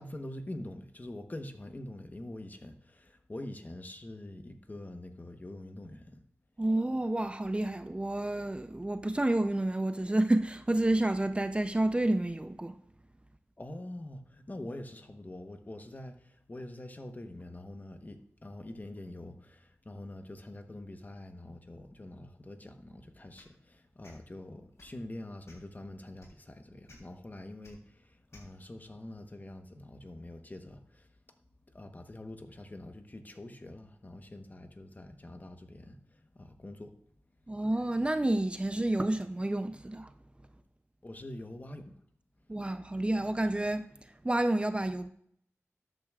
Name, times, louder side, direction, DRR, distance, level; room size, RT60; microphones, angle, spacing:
voice 1, 0.0-6.2 13.6-31.1 31.7-36.9 41.0-41.9, left 1 dB, 35° left, 1.0 m, -45 dB
voice 2, 6.6-12.7 37.5-40.1 42.5-43.9 44.2-45.1, right 1 dB, 20° right, 0.5 m, -29 dB
sound 1, 23.3-23.5 24.0-24.2 24.7-25.0 25.4-25.7 26.2-26.3 26.9-27.0 27.6-27.7 28.3-28.5, left 2 dB, 65° left, 3.2 m, -56 dB
13.0 x 8.9 x 2.4 m
wide cardioid pair, 70°, 5 cm